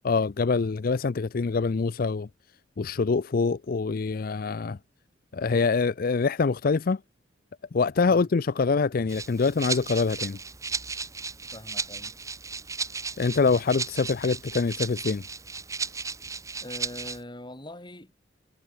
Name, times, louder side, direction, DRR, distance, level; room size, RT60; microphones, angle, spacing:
voice 1, 0.0-2.3 2.8-4.8 5.3-7.0 7.7-10.4 13.2-15.2, left 4 dB, 50° left, 0.4 m, -25 dB
Rattle (instrument), 9.1-17.2, right 4 dB, 15° right, 1.6 m, -35 dB
voice 2, 11.5-12.2 16.6-18.1, left 1 dB, 25° left, 4.7 m, -42 dB
head